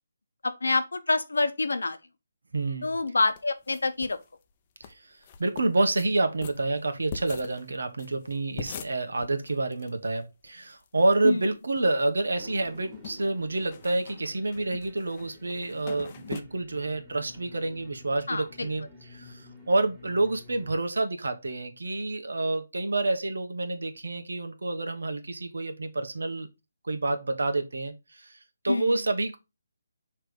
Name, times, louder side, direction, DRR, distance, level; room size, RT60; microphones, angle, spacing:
voice 1, 0.4-2.0 2.8-4.2 11.2-11.4 18.3-18.7 28.7-29.0, left 3 dB, 85° left, 0.9 m, -27 dB
voice 2, 2.5-3.0 4.9-5.0 5.4-18.9 19.1-26.5 26.8-28.4 28.6-29.4, right 2 dB, 80° right, 1.3 m, -28 dB
sound 1, 3.4-4.2 4.5-4.6 4.8-4.9 5.2-6.1 6.4-9.9 10.2-10.3 10.4-11.1 11.6-12.2 12.5-16.4, left 7 dB, 30° left, 0.7 m, -43 dB
sound 2, 12.4-20.8, left 1 dB, 10° right, 1.9 m, -50 dB
6.1 x 3.3 x 4.9 m
figure-of-eight pair, 155°, 0 cm